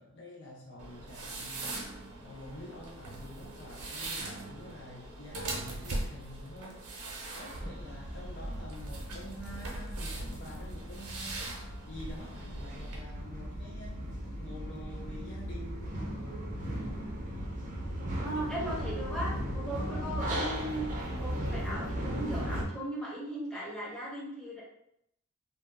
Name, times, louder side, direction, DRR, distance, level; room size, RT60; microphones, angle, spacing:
voice 1, 0.0-6.8 7.3-16.1 18.3-18.9, left 1 dB, 50° left, -2 dB, 0.4 m, -48 dB
sound 1, 0.8-13.0, right 2 dB, 90° right, 0.6 m, -41 dB
sound 2, 7.5-22.6, equal, 35° right, 0.5 m, -37 dB
voice 2, 18.2-24.6, right 1 dB, 5° left, -8 dB, 0.7 m, -38 dB
2.1 x 2.0 x 3.3 m, 0.76 s
head